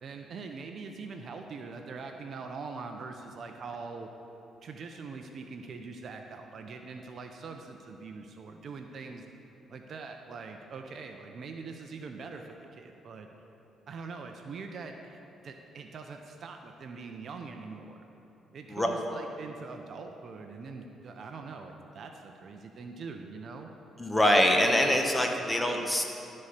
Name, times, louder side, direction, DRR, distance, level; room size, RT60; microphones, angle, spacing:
voice 1, 0.0-4.1 4.6-9.3 9.7-13.3 13.9-18.0 18.5-23.7, right 4 dB, 55° right, 4 dB, 0.6 m, -43 dB
voice 2, 24.0-26.0, left 1 dB, 10° left, 2 dB, 1.1 m, -24 dB
12.5 x 4.3 x 6.5 m, 2.9 s
cardioid pair, 90°, 0 cm